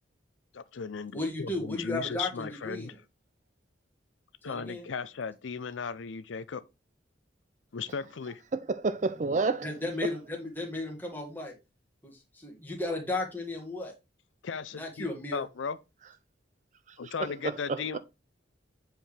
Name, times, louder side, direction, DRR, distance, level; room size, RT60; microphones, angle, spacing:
voice 1, 0.5-2.9 4.4-6.6 7.7-8.4 14.4-15.1 15.3-15.8 17.0-18.0, left 5 dB, 85° left, 0.5 m, -36 dB
voice 2, 1.1-3.0 4.5-4.9 9.6-11.5 12.0-13.9 14.7-15.4, left 2 dB, 10° left, 1.8 m, -35 dB
voice 3, 8.5-9.7 17.0-18.0, right 3 dB, 40° right, 0.4 m, -30 dB
7.8 x 4.6 x 3.3 m
head